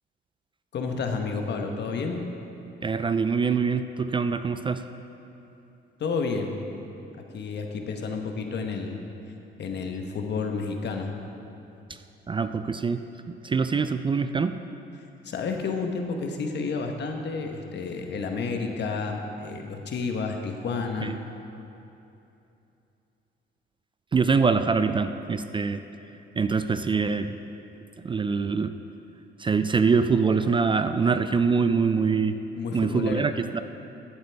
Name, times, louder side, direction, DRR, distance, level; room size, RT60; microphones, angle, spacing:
voice 1, 0.7-2.2 6.0-6.6 7.3-9.0 9.6-11.1 15.2-21.2 32.6-33.4, left 4 dB, 60° left, 3 dB, 1.1 m, -30 dB
voice 2, 2.8-4.8 11.9-12.0 12.3-14.6 21.0-21.2 24.1-25.8 26.4-27.4 28.0-28.7 29.4-32.4 32.7-33.6, right 5 dB, 25° right, 10 dB, 0.4 m, -24 dB
15.0 x 7.9 x 3.4 m, 2.9 s
cardioid pair, 90°, 20 cm